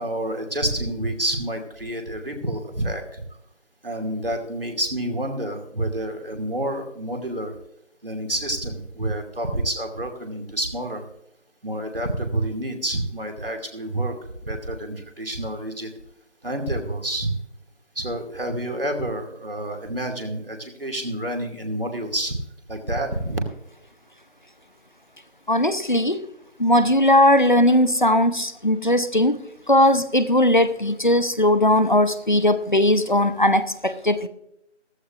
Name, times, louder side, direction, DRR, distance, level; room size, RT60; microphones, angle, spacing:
voice 1, 0.0-3.2 3.8-7.5 8.0-11.0 11.6-15.9 16.4-17.3 17.9-22.4 22.7-23.4, right 1 dB, 50° right, 3 dB, 2.6 m, -28 dB
voice 2, 25.5-26.3 26.6-29.4 29.7-34.3, left 1 dB, 40° left, 13 dB, 0.8 m, -18 dB
15.0 x 15.0 x 2.6 m, 0.79 s
figure-of-eight pair, 175°, 36 cm